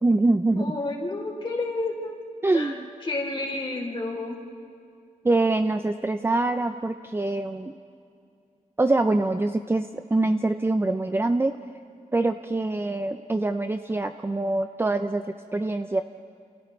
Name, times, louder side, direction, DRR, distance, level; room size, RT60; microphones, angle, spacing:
voice 1, 0.0-0.7 2.4-2.9 5.2-7.7 8.8-11.6 12.1-15.2 15.5-16.0, right 2 dB, 15° right, 7 dB, 0.5 m, -24 dB
voice 2, 0.6-2.1 2.5-2.7 3.0-4.4, left 2 dB, 35° left, -1 dB, 3.4 m, -30 dB
29.0 x 29.0 x 3.2 m, 2.4 s
wide cardioid pair, 125°, 14 cm